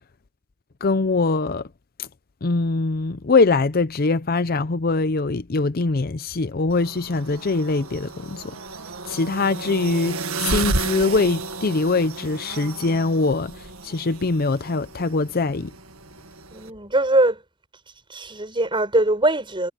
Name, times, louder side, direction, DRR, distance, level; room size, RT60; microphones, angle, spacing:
voice 1, 0.8-1.7 2.0-2.1 2.4-8.6 9.0-15.7, left 3 dB, 45° left, 0.6 m, -22 dB
sound 1, 6.7-16.7, right 3 dB, 85° right, 1.8 m, -32 dB
voice 2, 16.5-17.4 18.1-19.7, right 1 dB, 25° right, 7.3 m, -21 dB
head